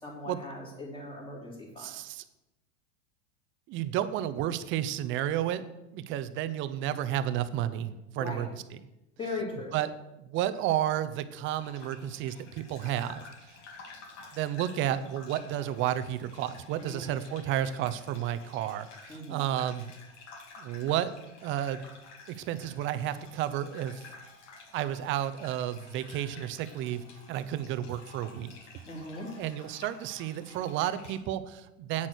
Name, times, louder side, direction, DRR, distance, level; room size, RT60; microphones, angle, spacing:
voice 1, 0.0-1.9 8.2-8.4 9.2-9.8 16.8-17.1 19.1-19.4 28.9-29.3, left 2 dB, 15° left, -1 dB, 3.2 m, -39 dB
voice 2, 1.8-2.2 3.7-5.6 5.9-8.8 9.7-9.9 10.2-13.3 14.3-19.9 20.6-21.1 21.4-21.8 22.3-24.0 24.7-28.5 29.4-32.1, right 11 dB, 30° right, 12 dB, 0.7 m, -32 dB
Gurgling / Bathtub (filling or washing), 11.5-31.2, left 3 dB, 70° left, 2.6 m, -51 dB
8.7 x 8.6 x 6.4 m, 0.93 s
supercardioid pair, 140°, 37 cm